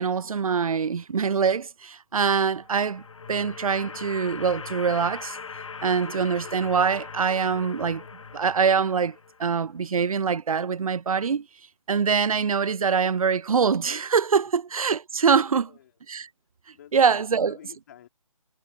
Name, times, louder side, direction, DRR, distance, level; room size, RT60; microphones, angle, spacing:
voice 1, 0.0-3.0 3.3-5.4 5.8-8.0 8.3-11.5 11.9-15.7 16.1-16.3 16.9-17.6, right 6 dB, 75° right, 0.5 m, -24 dB
sound 1, 2.5-9.6, left 5 dB, 60° left, 1.2 m, -40 dB
voice 2, 15.5-15.8 16.7-18.1, left 11 dB, 30° left, 4.3 m, -50 dB
figure-of-eight pair, 160°, 18 cm